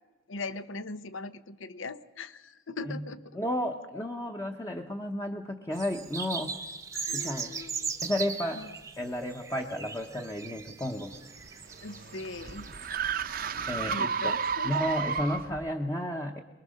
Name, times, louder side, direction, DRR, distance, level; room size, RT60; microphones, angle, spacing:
voice 1, 0.3-3.2 6.9-7.9 8.5-8.7 11.8-12.7 13.9-14.7, left 3 dB, 75° left, 13 dB, 0.9 m, -40 dB
voice 2, 3.3-6.5 7.1-7.5 8.0-8.7 9.0-11.2 13.7-14.3 14.6-16.4, equal, 15° left, 3 dB, 0.9 m, -32 dB
sound 1, 5.7-13.0, right 5 dB, 15° right, 0.9 m, -39 dB
sound 2, 11.1-15.7, right 6 dB, 45° right, 0.7 m, -32 dB
23.0 x 21.5 x 6.5 m, 1.2 s
head